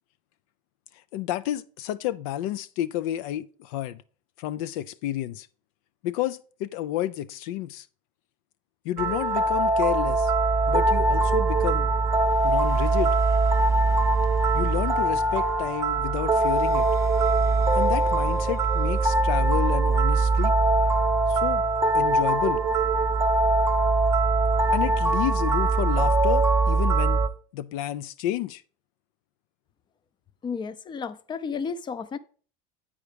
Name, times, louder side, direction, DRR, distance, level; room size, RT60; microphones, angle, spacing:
voice 1, 1.1-4.0 4.4-5.5 6.0-7.9 8.8-10.3 10.7-11.9 12.4-13.2 14.5-16.9 17.8-20.5 21.3-21.7 21.9-22.6 24.7-27.2 27.5-28.6, left 13 dB, 75° left, 0.4 m, -30 dB
sound 1, 9.0-27.3, right 2 dB, 15° right, 0.7 m, -22 dB
voice 2, 30.4-32.2, left 5 dB, 25° left, 0.6 m, -32 dB
8.2 x 4.9 x 5.0 m
supercardioid pair, 105°, 18 cm